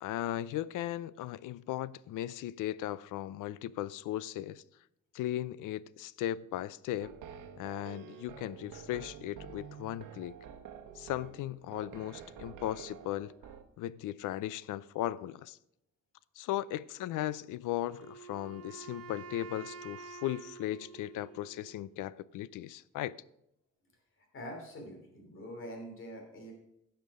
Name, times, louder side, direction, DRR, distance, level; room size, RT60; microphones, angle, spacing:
voice 1, 0.0-4.6 5.1-7.1 7.6-10.4 11.0-13.3 13.8-15.6 16.4-23.1, left 13 dB, 85° left, 0.5 m, -37 dB
sound 1, 7.0-13.6, right 8 dB, 90° right, 1.1 m, -49 dB
Wind instrument woodwind instrument, 17.8-21.8, right 5 dB, 50° right, 0.9 m, -48 dB
voice 2, 24.3-26.5, equal, 40° left, 3.0 m, -44 dB
15.5 x 5.9 x 4.9 m
cardioid pair, 160°, 30 cm